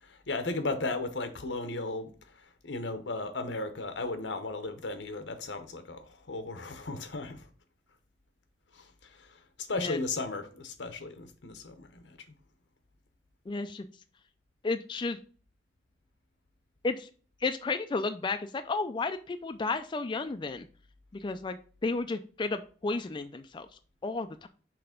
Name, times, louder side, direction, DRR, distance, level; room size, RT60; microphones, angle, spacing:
voice 1, 0.3-2.1 2.6-7.4 8.7-8.9 9.2-9.3 9.7-12.2, left 3 dB, 90° left, 1.0 m, -35 dB
voice 2, 13.5-13.9 14.6-15.2 16.8-17.1 17.4-20.7 21.2-23.7 24.0-24.5, left 3 dB, 25° left, 0.3 m, -32 dB
5.9 x 3.3 x 5.1 m
head